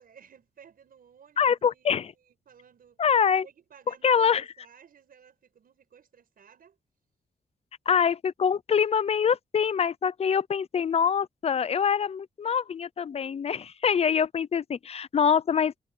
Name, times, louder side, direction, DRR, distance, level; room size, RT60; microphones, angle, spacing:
voice 1, 0.0-3.0 3.4-6.8, right 7 dB, 70° right, 5.4 m, -56 dB
voice 2, 1.4-2.1 3.0-3.5 4.0-4.4 7.9-15.8, left 7 dB, 40° left, 0.5 m, -24 dB
wide cardioid pair, 165°, 16 cm